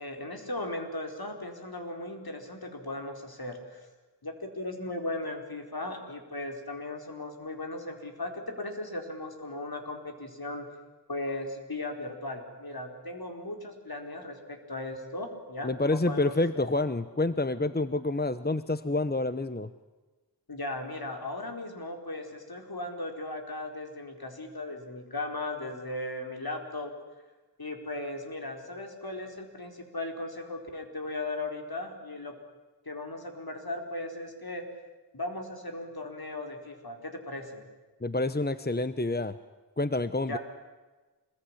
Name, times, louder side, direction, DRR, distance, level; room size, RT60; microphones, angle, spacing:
voice 1, 0.0-3.9 4.2-10.7 11.1-16.7 20.5-26.9 27.6-32.3 32.8-34.6 35.1-37.6 40.2-40.4, left 2 dB, 60° left, 4 dB, 4.8 m, -37 dB
voice 2, 15.6-19.7 38.0-39.4 39.8-40.4, left 2 dB, 25° left, 13 dB, 1.0 m, -28 dB
26.0 x 22.0 x 10.0 m, 1.2 s
wide cardioid pair, 45°, 40 cm